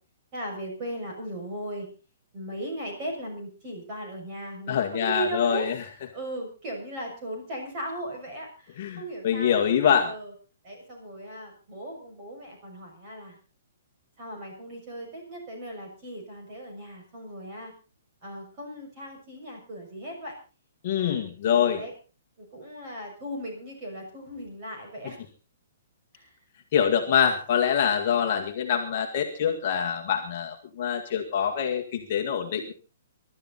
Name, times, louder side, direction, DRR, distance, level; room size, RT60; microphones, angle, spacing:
voice 1, 0.3-1.9 2.3-5.7 6.1-9.6 10.0-10.3 10.6-13.4 14.2-17.7 18.2-20.3 20.9-21.2 21.5-21.9 22.4-25.2 26.1-26.3, right 1 dB, 25° right, 0 dB, 6.4 m, -37 dB
voice 2, 4.7-5.8 8.8-10.1 20.8-21.8 26.7-32.7, left 8 dB, 35° left, 2 dB, 1.8 m, -25 dB
23.0 x 12.5 x 4.1 m, 0.35 s
hypercardioid pair, 180°, 0 cm